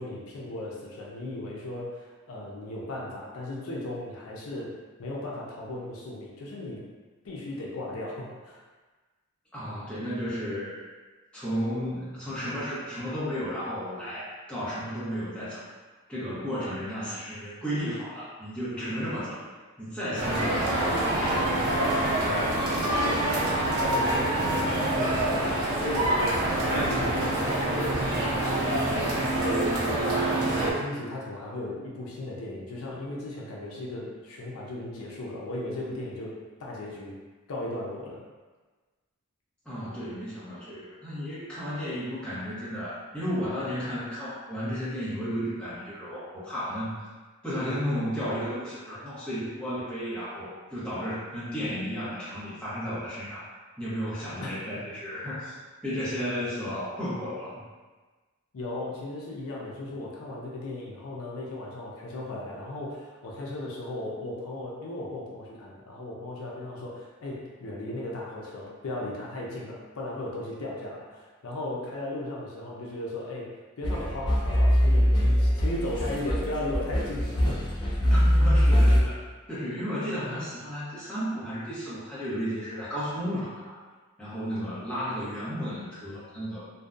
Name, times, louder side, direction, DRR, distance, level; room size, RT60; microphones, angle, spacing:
voice 1, 0.0-6.9 7.2-8.6 22.9-37.2 37.5-38.2 54.4-54.6 58.5-77.8, left 1 dB, 75° left, -4 dB, 0.5 m, -36 dB
voice 2, 9.5-10.8 11.3-15.6 16.1-19.4 19.8-21.6 39.6-47.1 47.4-53.5 53.8-55.6 55.8-57.5 78.0-79.2 79.5-83.7 84.2-86.7, equal, 5° left, -12 dB, 0.8 m, -33 dB
sound 1, 20.2-30.7, right 1 dB, 75° right, 0.6 m, -26 dB
sound 2, 73.8-79.0, equal, 20° left, 0.4 m, -22 dB
2.6 x 2.1 x 2.4 m, 1.3 s
head